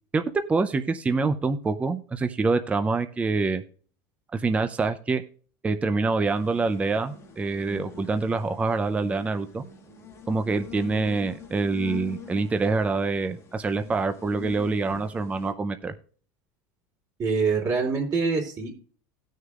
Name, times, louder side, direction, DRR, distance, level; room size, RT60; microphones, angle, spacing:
voice 1, 0.5-3.6 4.3-5.2 5.6-9.6 10.3-15.9, right 3 dB, 15° right, 8 dB, 0.5 m, -26 dB
sound 1, 6.3-15.5, left 7 dB, 30° left, 1.4 m, -44 dB
voice 2, 17.2-18.7, right 4 dB, 35° right, 0 dB, 2.9 m, -25 dB
18.0 x 6.5 x 2.4 m, 0.43 s
supercardioid pair, 130°, 10 cm